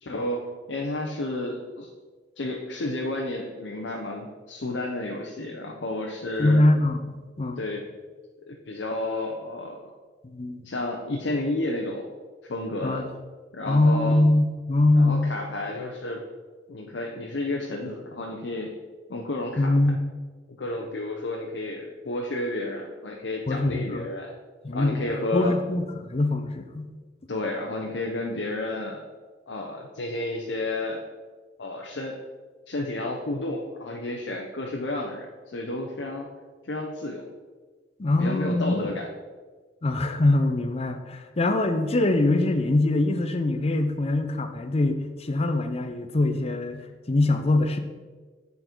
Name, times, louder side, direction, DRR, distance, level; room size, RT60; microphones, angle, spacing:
voice 1, 0.0-1.9 2.4-6.6 7.6-7.8 8.5-9.9 10.6-12.1 12.5-13.1 13.5-14.2 15.0-16.2 16.7-18.7 19.1-19.7 20.6-24.3 24.7-25.6 27.3-29.0 29.5-31.0 31.6-32.2 32.7-36.3 36.6-37.2 38.2-39.0, left 2 dB, 80° left, 0 dB, 0.7 m, -31 dB
voice 2, 6.4-7.7 10.2-10.6 12.8-13.0 13.7-15.2 19.6-20.0 23.5-24.0 24.6-26.9 38.0-38.8 39.8-46.8 47.1-47.8, left 2 dB, 35° left, 8 dB, 0.6 m, -23 dB
9.0 x 4.0 x 4.4 m, 1.4 s
head